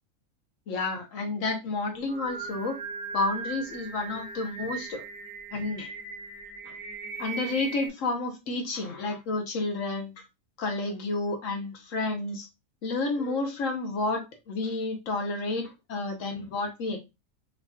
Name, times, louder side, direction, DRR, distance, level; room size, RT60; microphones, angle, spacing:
voice 1, 0.7-2.8 3.1-5.0 5.5-5.9 6.6-6.8 7.2-10.2 10.6-12.5 12.8-17.0, left 3 dB, 65° left, 3 dB, 1.3 m, -30 dB
Singing, 1.9-7.9, right 5 dB, 45° right, 1.3 m, -39 dB
4.7 x 2.9 x 2.3 m, 0.23 s
omnidirectional pair, 1.4 m